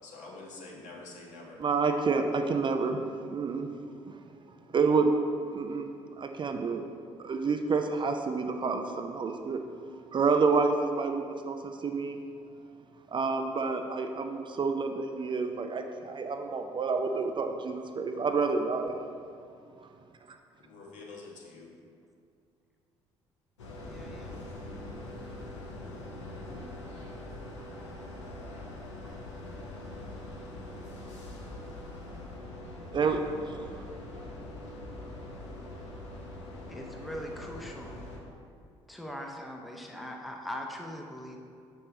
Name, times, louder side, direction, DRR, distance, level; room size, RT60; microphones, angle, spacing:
voice 1, 0.0-1.6 20.6-21.7, left 3 dB, 55° left, -2 dB, 1.4 m, -46 dB
voice 2, 1.6-3.7 4.1-4.2 4.7-5.1 5.5-5.9 6.2-6.8 7.2-9.6 10.1-12.2 13.1-19.0 32.9-33.2, right 4 dB, 30° right, 5 dB, 0.5 m, -29 dB
sound 1, 23.6-38.2, left 1 dB, 80° left, 0.9 m, -43 dB
voice 3, 23.9-24.4 36.7-38.0 38.9-41.4, equal, ahead, 1 dB, 0.8 m, -41 dB
6.5 x 5.4 x 4.1 m, 2.4 s
figure-of-eight pair, 50°, 15 cm